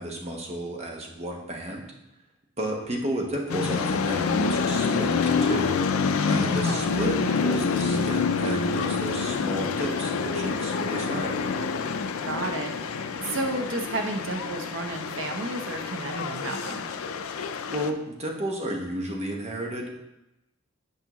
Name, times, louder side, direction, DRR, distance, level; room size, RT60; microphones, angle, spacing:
voice 1, 0.0-1.9 2.6-5.8 6.2-11.4 17.3-20.0, right 1 dB, 30° right, 0 dB, 1.0 m, -32 dB
sound 1, 3.5-17.9, left 5 dB, 85° left, 0.4 m, -27 dB
voice 2, 6.4-7.5 12.2-16.8, right 2 dB, 65° right, 3 dB, 0.9 m, -32 dB
8.3 x 5.2 x 3.0 m, 0.90 s
head